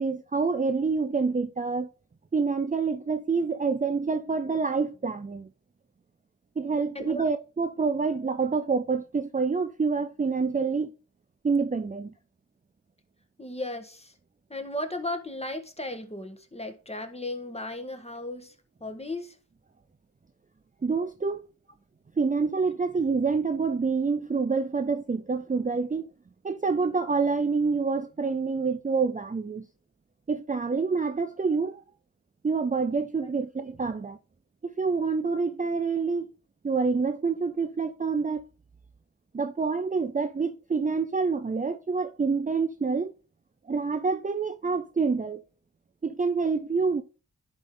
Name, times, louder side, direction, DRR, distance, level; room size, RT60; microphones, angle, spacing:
voice 1, 0.0-1.9 2.3-5.5 6.6-10.9 11.4-12.1 20.8-21.5 22.2-26.1 26.4-29.7 30.3-31.8 32.4-34.2 34.6-36.3 36.6-38.4 39.3-43.1 43.7-45.4 46.0-47.0, right 4 dB, 25° right, 0.5 m, -27 dB
voice 2, 13.4-14.1 14.5-18.5 18.8-19.4, left 1 dB, 15° left, 1.5 m, -35 dB
11.0 x 3.7 x 3.8 m
cardioid pair, 45°, 35 cm